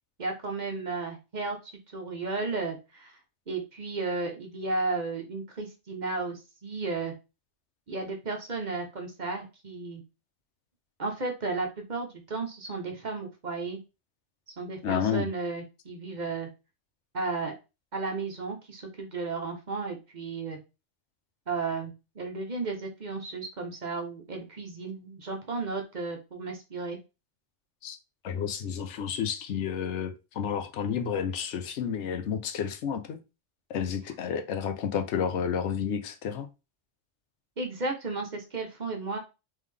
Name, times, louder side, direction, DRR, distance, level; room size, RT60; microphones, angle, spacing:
voice 1, 0.2-1.6 1.9-3.2 3.5-7.1 7.9-10.0 11.0-13.8 14.6-16.5 17.1-17.5 17.9-20.6 21.5-27.0 37.6-39.2, right 3 dB, 45° right, 0.8 m, -34 dB
voice 2, 14.8-15.3 27.8-28.0 28.2-33.2 33.7-36.5, left 7 dB, 75° left, 0.9 m, -31 dB
3.6 x 3.3 x 3.2 m
omnidirectional pair, 1.2 m